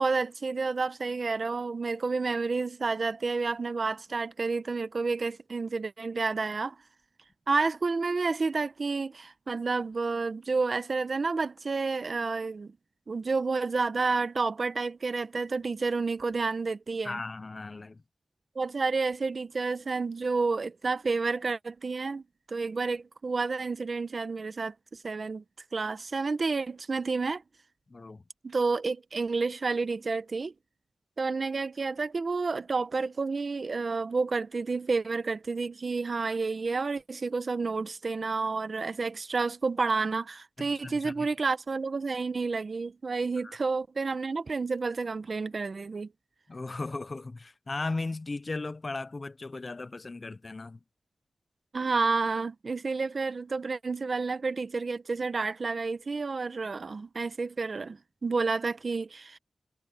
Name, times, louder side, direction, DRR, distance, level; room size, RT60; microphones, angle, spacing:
voice 1, 0.0-6.7 7.5-12.7 13.1-17.2 18.5-22.2 22.5-24.7 25.0-25.4 25.7-27.4 28.4-30.5 31.2-46.1 51.7-59.4, right 4 dB, 50° right, 1.1 m, -30 dB
voice 2, 17.0-18.0 27.9-28.2 40.6-41.3 43.4-43.6 46.5-50.8, left 3 dB, 40° left, 0.9 m, -37 dB
wide cardioid pair, 100°, 0 cm